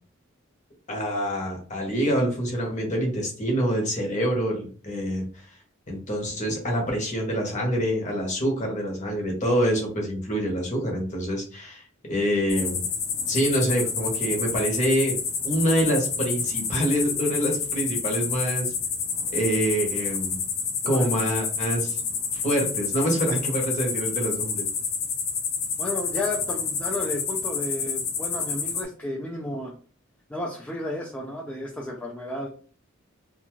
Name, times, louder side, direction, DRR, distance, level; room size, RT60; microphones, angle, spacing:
voice 1, 0.9-5.4 5.9-11.8 12.1-12.8 13.3-15.2 15.4-18.7 19.3-20.4 20.8-22.0 22.3-24.7, equal, 35° left, 1 dB, 0.9 m, -26 dB
sound 1, 12.5-28.8, left 5 dB, 85° left, 0.7 m, -29 dB
voice 2, 25.8-29.7 30.3-32.5, left 1 dB, 5° left, -3 dB, 0.4 m, -32 dB
2.5 x 2.3 x 3.0 m, 0.40 s
head